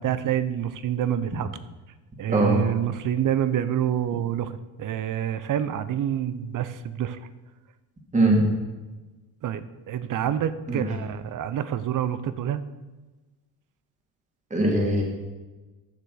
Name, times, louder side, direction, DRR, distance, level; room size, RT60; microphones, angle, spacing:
voice 1, 0.0-1.5 2.2-4.5 4.8-7.2 9.4-12.6, right 10 dB, 45° right, 14 dB, 0.8 m, -27 dB
voice 2, 2.3-2.6 8.1-8.5 10.7-10.9 14.5-15.0, right 1 dB, 15° right, 0 dB, 2.4 m, -21 dB
12.0 x 6.8 x 6.5 m, 1.2 s
cardioid pair, 105°, 45 cm